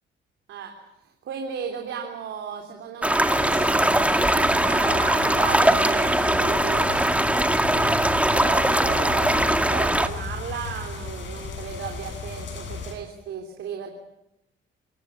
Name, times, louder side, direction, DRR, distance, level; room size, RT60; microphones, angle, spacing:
voice 1, 1.0-13.9, right 7 dB, 75° right, 3 dB, 3.5 m, -35 dB
sound 1, 3.0-10.1, right 1 dB, 5° right, 1.8 m, -21 dB
sound 2, 3.2-12.9, left 4 dB, 70° left, 7.5 m, -35 dB
27.0 x 18.5 x 8.5 m, 0.84 s
cardioid pair, 90°, 20 cm